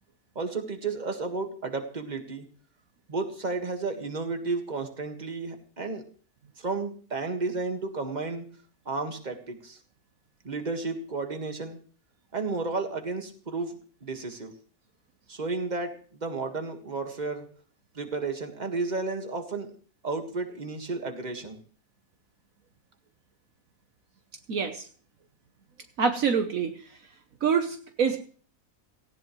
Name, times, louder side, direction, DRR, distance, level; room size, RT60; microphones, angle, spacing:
voice 1, 0.4-2.5 3.1-6.0 6.6-8.5 8.9-9.8 10.4-11.8 12.3-13.8 14.0-14.5 15.3-17.5 18.0-19.7 20.0-21.6, right 3 dB, 30° right, 5 dB, 1.8 m, -32 dB
voice 2, 24.5-24.9 26.0-26.8 27.4-28.2, right 6 dB, 65° right, 7 dB, 1.4 m, -25 dB
18.0 x 16.0 x 3.1 m, 0.43 s
omnidirectional pair, 1.6 m